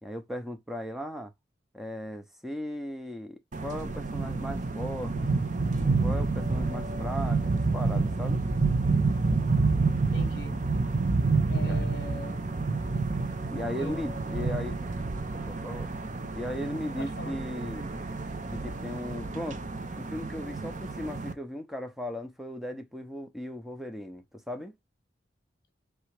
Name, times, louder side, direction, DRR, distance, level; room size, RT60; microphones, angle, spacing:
voice 1, 0.0-1.3 1.7-5.3 5.8-8.4 11.7-11.8 13.5-14.8 15.3-15.9 16.4-17.9 18.5-19.6 19.9-24.7, left 1 dB, ahead, 0.6 m, -37 dB
sound 1, 3.5-21.3, right 3 dB, 40° right, 0.6 m, -29 dB
voice 2, 10.1-10.6 11.5-12.5 13.7-14.0 14.4-14.5 17.0-17.4, left 2 dB, 65° left, 1.0 m, -40 dB
3.3 x 3.0 x 4.7 m
head